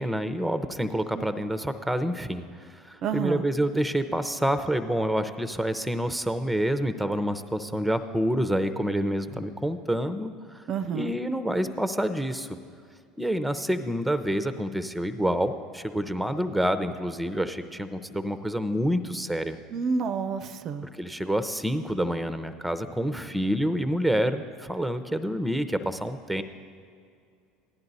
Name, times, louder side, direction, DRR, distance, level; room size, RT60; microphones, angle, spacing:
voice 1, 0.0-12.5 13.2-19.6 20.9-26.4, equal, ahead, 10 dB, 0.7 m, -28 dB
voice 2, 3.0-3.4 10.7-11.1 19.7-20.9, right 5 dB, 50° right, 10 dB, 0.5 m, -29 dB
15.0 x 10.5 x 4.1 m, 2.3 s
hypercardioid pair, 80°, 0 cm